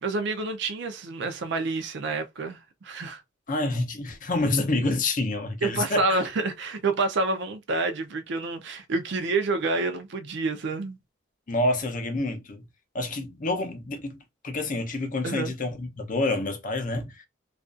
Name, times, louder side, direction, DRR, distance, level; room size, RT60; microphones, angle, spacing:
voice 1, 0.0-3.2 5.6-11.0 15.2-15.5, right 3 dB, 55° right, 0.4 m, -28 dB
voice 2, 3.5-6.2 11.5-12.6 12.9-14.2 14.4-17.2, left 2 dB, 40° left, 0.5 m, -28 dB
2.4 x 2.3 x 2.4 m
head